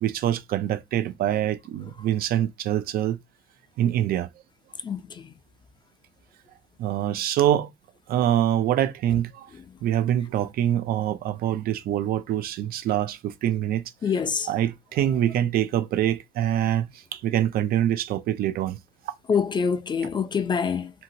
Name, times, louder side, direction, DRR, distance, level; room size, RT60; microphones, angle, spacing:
voice 1, 0.0-3.2 3.8-4.3 6.8-7.7 8.1-9.5 9.8-13.8 14.5-18.8, right 11 dB, 65° right, 0.4 m, -25 dB
voice 2, 4.8-5.2 14.0-14.5 19.3-20.9, left 6 dB, 25° left, 0.4 m, -25 dB
2.8 x 2.7 x 2.7 m
cardioid pair, 110°, 17 cm